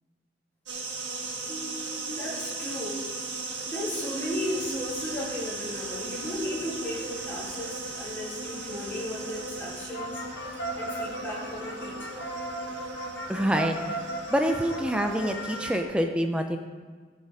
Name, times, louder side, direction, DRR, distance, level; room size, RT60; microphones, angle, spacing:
sound 1, 0.7-15.8, right 3 dB, 80° right, 1.8 m, -37 dB
voice 1, 1.5-3.0 3.7-10.2 10.7-12.2, left 1 dB, 10° left, -6 dB, 2.8 m, -35 dB
sound 2, 4.3-15.8, right 1 dB, 70° left, 1.1 m, -40 dB
voice 2, 13.3-13.8 14.3-16.6, equal, 5° right, 4 dB, 0.6 m, -26 dB
14.0 x 6.9 x 4.8 m, 1.5 s
head